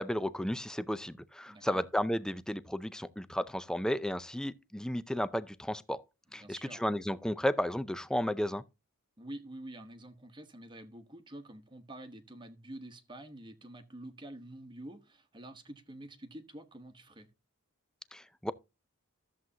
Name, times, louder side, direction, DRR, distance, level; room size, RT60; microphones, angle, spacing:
voice 1, 0.0-6.0 6.3-8.6 18.1-18.5, equal, 5° left, 0.4 m, -33 dB
voice 2, 1.5-1.9 6.3-6.9 9.2-17.3, right 1 dB, 20° right, 1.1 m, -48 dB
13.5 x 7.6 x 2.8 m
head